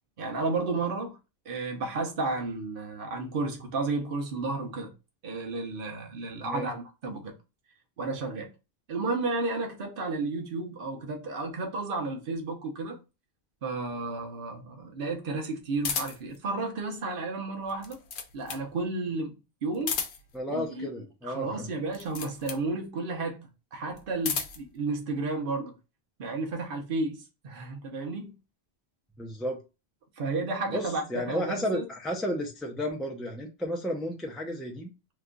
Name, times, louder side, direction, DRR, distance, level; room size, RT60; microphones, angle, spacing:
voice 1, 0.2-1.2 1.5-4.9 5.2-7.3 8.0-8.5 8.9-13.0 13.6-18.0 18.3-19.3 19.6-20.0 20.5-20.9 21.2-23.4 23.7-25.7 26.2-28.3 30.2-31.8, right 3 dB, 55° right, 1.0 m, -32 dB
sound 1, 15.8-16.4 17.6-18.7 19.7-20.4 21.9-22.7 23.9-24.7, left 6 dB, 85° left, 0.9 m, -33 dB
voice 2, 20.3-21.7 29.2-29.6 30.7-34.9, equal, ahead, 0.4 m, -33 dB
3.0 x 2.3 x 3.7 m
omnidirectional pair, 1.1 m